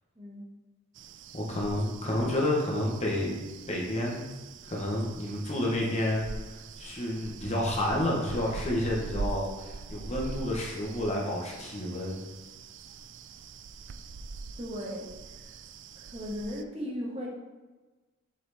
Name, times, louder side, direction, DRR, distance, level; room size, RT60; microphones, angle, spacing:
voice 1, 0.1-0.5 13.9-14.0 14.6-15.5 15.9-17.3, equal, 25° right, -4 dB, 1.5 m, -37 dB
sound 1, 1.0-16.6, right 3 dB, 60° right, 0.4 m, -43 dB
voice 2, 1.3-4.3 4.6-12.2, left 1 dB, 30° left, -2 dB, 1.3 m, -30 dB
7.7 x 4.4 x 4.2 m, 1.2 s
head